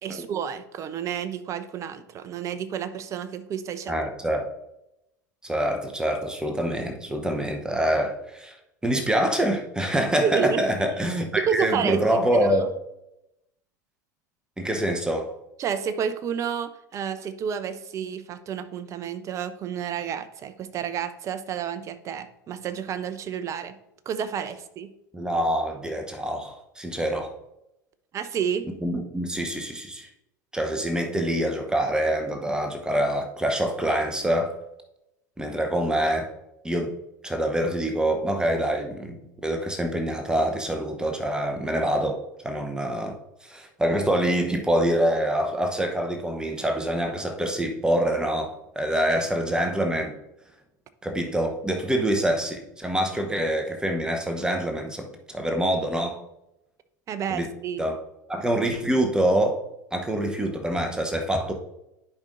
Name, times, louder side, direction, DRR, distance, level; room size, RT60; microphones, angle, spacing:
voice 1, 0.0-3.9 10.2-10.7 11.4-12.0 12.3-12.4 15.6-23.7 24.1-24.9 28.1-28.7 57.1-57.8, right 8 dB, 30° right, 12 dB, 0.6 m, -30 dB
voice 2, 3.9-4.4 5.4-8.5 8.8-12.7 14.6-15.3 25.1-27.3 28.8-30.1 30.5-34.5 35.4-36.3 36.6-36.9 37.2-42.2 42.4-50.1 51.0-56.2 57.3-57.5 57.8-58.0 58.3-59.6 59.9-61.5, right 1 dB, 5° right, 4 dB, 0.9 m, -25 dB
10.5 x 5.1 x 2.6 m, 0.86 s
figure-of-eight pair, 80°, 10 cm